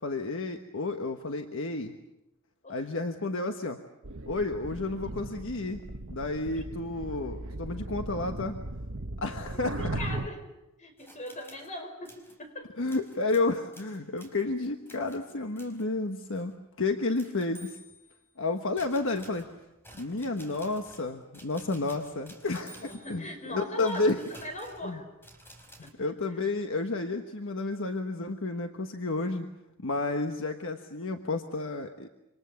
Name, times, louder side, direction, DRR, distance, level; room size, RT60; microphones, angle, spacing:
voice 1, 0.0-1.9 2.7-3.8 4.3-5.8 6.1-8.6 9.2-9.8 12.8-17.8 18.4-19.5 19.9-24.2 24.8-25.0 25.8-29.5 29.8-32.1, left 3 dB, 65° left, 5 dB, 1.3 m, -31 dB
sound 1, 4.0-10.3, right 2 dB, 65° right, 1.3 m, -38 dB
voice 2, 9.5-10.4 10.8-12.7 22.7-25.0 25.8-26.4, left 1 dB, 35° left, 5 dB, 5.0 m, -40 dB
sound 2, 11.0-11.7 12.0-12.4 12.9-15.9 16.4-16.5 17.2-18.3 18.8-25.9, equal, 10° left, 4.7 m, -53 dB
27.5 x 25.5 x 7.1 m, 0.95 s
head